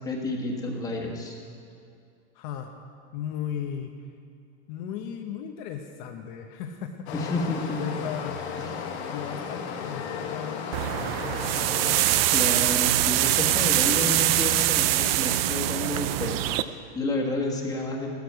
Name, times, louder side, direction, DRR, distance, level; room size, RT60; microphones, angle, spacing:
voice 1, 0.0-1.4 7.1-7.9 8.6-8.8 12.3-18.1, left 2 dB, 10° left, -1 dB, 1.5 m, -30 dB
voice 2, 2.3-2.7 3.1-4.0 4.7-7.1 7.8-8.7 9.1-12.3, left 8 dB, 45° left, 4 dB, 0.8 m, -36 dB
Stream, 7.1-12.1, left 6 dB, 75° left, 1.9 m, -35 dB
sound 1, 10.7-16.6, right 14 dB, 60° right, 0.6 m, -23 dB
15.0 x 13.0 x 4.7 m, 2.5 s
supercardioid pair, 160°, 34 cm